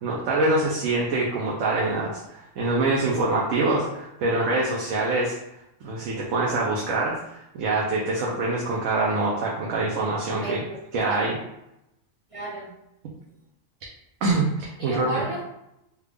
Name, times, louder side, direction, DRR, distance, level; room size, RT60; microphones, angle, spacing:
voice 1, 0.0-5.4 5.8-7.2 7.5-10.6 10.9-11.4 14.2-15.2, right 2 dB, 85° right, -3 dB, 1.0 m, -25 dB
voice 2, 10.4-11.2 12.3-12.7 14.8-15.5, right 1 dB, 40° right, -4 dB, 0.5 m, -33 dB
3.4 x 2.3 x 3.3 m, 0.86 s
omnidirectional pair, 1.3 m